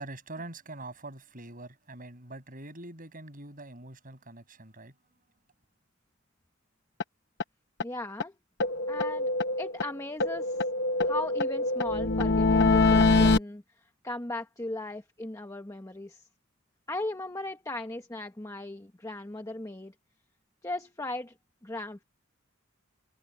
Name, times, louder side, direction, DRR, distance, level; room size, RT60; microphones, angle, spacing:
voice 1, 0.0-5.0, right 2 dB, 40° right, 7.7 m, -44 dB
sound 1, 7.0-7.1 7.4-7.5 7.8-7.9 8.2-8.3 8.6-9.9 10.2-13.4, left 3 dB, 55° left, 1.0 m, -24 dB
voice 2, 7.8-8.3 8.9-9.3 9.6-10.6 11.0-13.6 14.0-16.3 16.9-19.9 20.6-21.3 21.6-22.0, left 2 dB, 15° left, 1.2 m, -37 dB
head